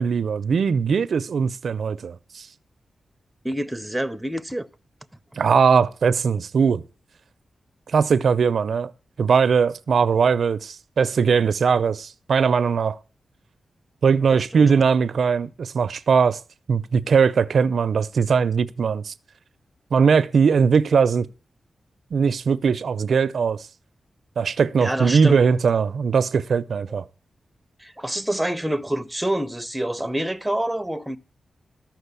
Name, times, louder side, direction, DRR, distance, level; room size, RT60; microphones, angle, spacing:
voice 1, 0.0-2.5 5.4-6.8 7.9-8.9 9.2-13.0 14.0-16.4 16.7-19.1 19.9-21.3 22.1-23.7 24.4-27.0, right 6 dB, 70° right, 0.5 m, -20 dB
voice 2, 3.4-4.7 14.5-14.8 24.8-25.4 27.8-31.2, right 1 dB, 5° right, 0.7 m, -27 dB
13.5 x 6.1 x 8.2 m
wide cardioid pair, 115°, 0 cm